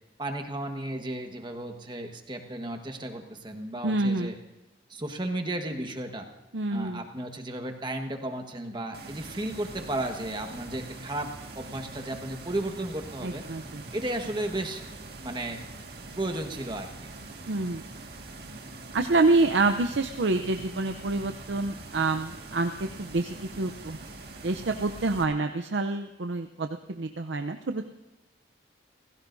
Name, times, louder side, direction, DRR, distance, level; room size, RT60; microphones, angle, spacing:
voice 1, 0.2-4.4 4.9-6.3 6.7-13.4 13.9-14.8 15.2-15.6 16.2-17.1, right 1 dB, 25° right, 4 dB, 1.4 m, -34 dB
voice 2, 3.8-4.4 6.5-7.0 13.2-13.8 17.5-17.8 18.9-24.0 24.4-27.9, right 3 dB, 80° right, 6 dB, 0.7 m, -27 dB
sound 1, 8.9-25.2, right 2 dB, 60° right, 1.9 m, -43 dB
29.0 x 16.5 x 2.7 m, 1.0 s
head